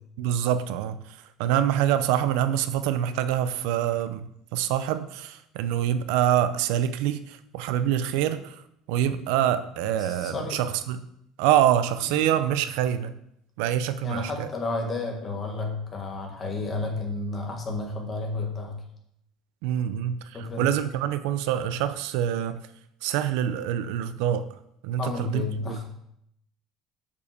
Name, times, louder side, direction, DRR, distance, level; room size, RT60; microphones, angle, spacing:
voice 1, 0.2-11.1 11.4-13.1 13.6-14.5 19.6-22.6 23.0-24.6 24.8-25.8, right 10 dB, 85° right, 0.6 m, -26 dB
voice 2, 10.0-10.6 14.0-18.7 20.3-20.7 25.0-25.8, left 3 dB, 25° left, 1.7 m, -31 dB
6.9 x 5.4 x 6.7 m
cardioid pair, 160°, 0 cm